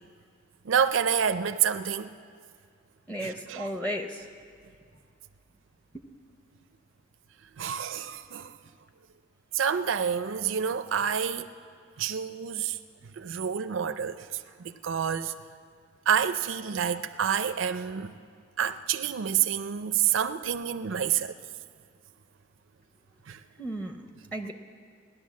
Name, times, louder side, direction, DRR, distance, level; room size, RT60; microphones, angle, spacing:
voice 1, 0.6-2.1 3.2-3.7 7.6-8.5 9.5-11.5 12.0-12.8 13.2-15.3 16.1-18.1 18.6-21.3 23.3-23.4, right 8 dB, 85° right, 10 dB, 0.5 m, -28 dB
voice 2, 3.1-4.3 23.6-24.1 24.3-24.5, equal, 10° left, 4 dB, 0.6 m, -34 dB
16.5 x 10.5 x 7.4 m, 2.2 s
head